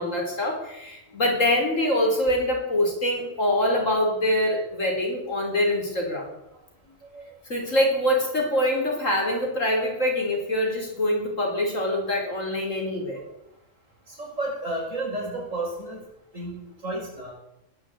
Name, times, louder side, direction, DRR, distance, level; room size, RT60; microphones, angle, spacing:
voice 1, 0.0-6.3 7.4-13.2, left 1 dB, 75° left, 0 dB, 4.9 m, -24 dB
voice 2, 6.9-7.3 14.1-16.0 16.3-17.3, right 2 dB, 80° right, -3 dB, 7.2 m, -32 dB
20.0 x 7.5 x 8.4 m, 0.86 s
omnidirectional pair, 1.3 m